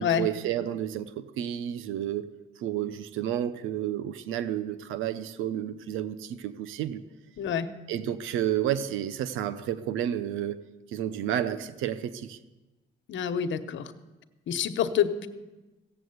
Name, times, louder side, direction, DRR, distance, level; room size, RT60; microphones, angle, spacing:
voice 1, 0.0-2.3 2.6-7.0 7.9-10.6 10.9-12.4, right 10 dB, 90° right, 14 dB, 0.7 m, -31 dB
voice 2, 7.4-7.7 13.1-13.9 14.5-15.3, left 8 dB, 70° left, 9 dB, 1.0 m, -27 dB
16.0 x 7.6 x 8.0 m, 1.1 s
cardioid pair, 90°, 20 cm